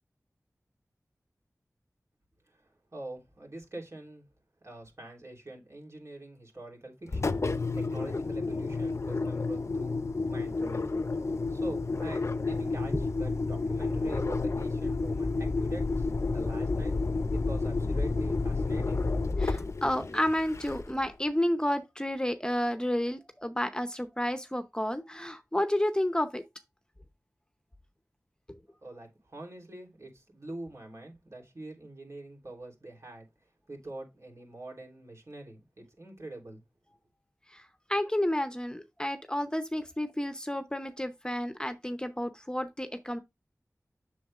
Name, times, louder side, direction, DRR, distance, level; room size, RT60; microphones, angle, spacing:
voice 1, 2.5-4.3 4.6-10.0 10.3-10.9 11.2-16.9 17.3-19.0 28.8-33.3 33.7-36.6, right 2 dB, 55° right, 3.2 m, -45 dB
Engine, 7.1-21.1, left 3 dB, 55° left, 0.6 m, -30 dB
voice 2, 19.4-26.4 28.5-28.6 37.5-37.6 37.9-43.2, left 1 dB, 15° left, 0.8 m, -31 dB
7.8 x 6.4 x 2.4 m
wide cardioid pair, 45°, 6 cm